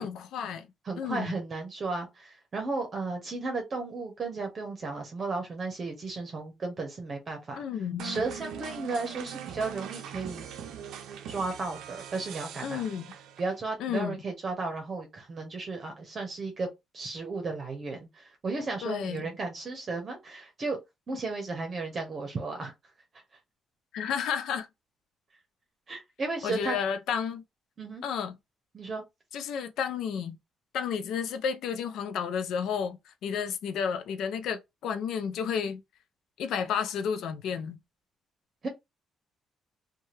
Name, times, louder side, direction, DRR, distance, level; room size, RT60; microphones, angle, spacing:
voice 1, 0.0-0.7 1.0-1.3 7.6-8.2 12.6-13.1 13.8-14.2 18.8-19.3 23.9-24.7 26.4-27.4 28.0-28.4 29.3-30.4 30.7-35.8 36.4-37.8, left 7 dB, 80° left, 0.4 m, -32 dB
voice 2, 0.9-7.6 8.0-10.4 11.3-12.8 13.4-16.7 16.9-20.8 21.1-22.7 25.9-26.8 27.8-28.0 28.7-29.0 38.6-38.7, right 3 dB, 40° right, 0.8 m, -34 dB
sound 1, 8.0-13.7, right 9 dB, 85° right, 0.5 m, -41 dB
2.7 x 2.2 x 3.1 m
cardioid pair, 90°, 0 cm